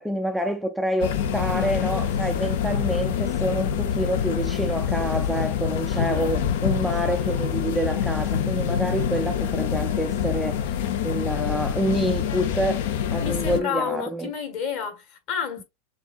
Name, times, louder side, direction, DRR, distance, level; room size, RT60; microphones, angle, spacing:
voice 1, 0.0-14.3, right 1 dB, ahead, 0.3 m, -27 dB
sound 1, 1.0-13.6, left 8 dB, 70° left, 0.6 m, -26 dB
voice 2, 5.9-6.3 13.2-15.6, left 7 dB, 45° left, 1.6 m, -30 dB
6.6 x 2.7 x 2.5 m
supercardioid pair, 165°, 0 cm